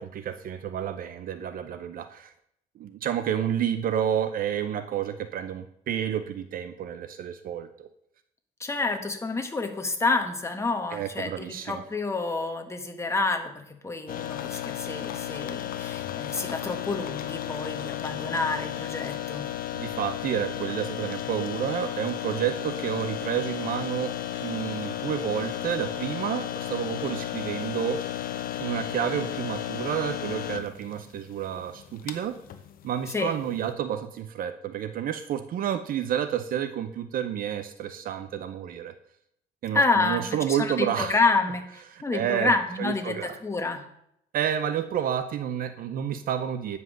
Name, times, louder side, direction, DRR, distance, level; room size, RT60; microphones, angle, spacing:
voice 1, 0.0-2.3 2.8-7.9 10.9-11.8 19.7-24.1 24.4-28.0 28.6-32.4 32.8-38.9 39.6-41.2 41.9-42.5 42.8-43.4 44.3-46.8, right 9 dB, 55° right, 10 dB, 0.7 m, -30 dB
voice 2, 8.6-19.5 33.1-33.3 39.7-43.8, left 3 dB, 15° left, 5 dB, 1.4 m, -28 dB
sound 1, 14.1-33.7, left 12 dB, 55° left, 0.9 m, -34 dB
9.3 x 5.5 x 6.4 m, 0.73 s
cardioid pair, 110°, 17 cm